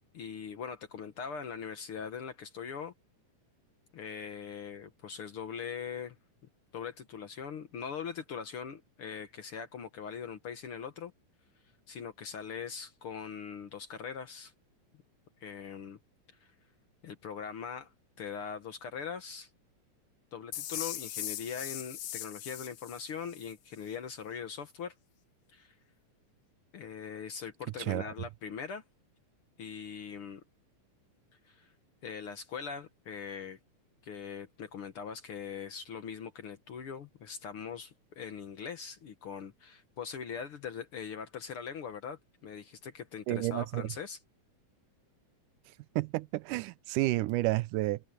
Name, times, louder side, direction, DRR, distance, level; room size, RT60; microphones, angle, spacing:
voice 1, 0.1-2.9 3.9-6.2 6.7-11.1 11.9-14.5 15.4-16.0 17.0-17.9 18.2-19.5 20.3-24.9 25.5-25.7 26.7-28.8 29.6-30.4 31.4-31.7 32.0-33.6 34.0-44.2, left 6 dB, 55° left, 1.7 m, -41 dB
sound 1, 20.5-23.5, left 12 dB, 75° left, 1.4 m, -40 dB
voice 2, 43.3-43.9 46.0-48.0, right 18 dB, 90° right, 2.2 m, -30 dB
omnidirectional pair, 3.7 m